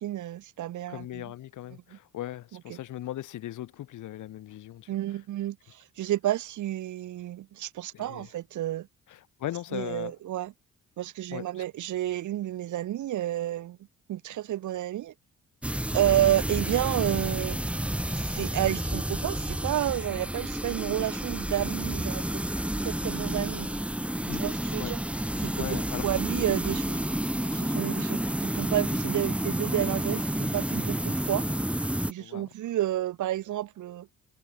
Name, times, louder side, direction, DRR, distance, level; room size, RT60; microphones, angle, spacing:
voice 1, 0.0-1.3 1.7-2.0 2.5-2.8 4.9-8.9 9.7-10.5 11.0-13.8 14.1-15.1 15.9-17.6 18.1-22.4 22.8-23.7 24.4-25.0 25.4-27.0 27.4-31.5 32.1-34.1, right 13 dB, 75° right, 2.5 m, -30 dB
voice 2, 0.9-5.0 7.9-8.3 9.1-10.1 11.3-11.6 24.3-24.9 25.6-26.1 32.2-32.5, left 13 dB, 80° left, 5.2 m, -38 dB
sound 1, 15.6-32.1, right 1 dB, 5° right, 1.2 m, -30 dB
cardioid pair, 90°, 30 cm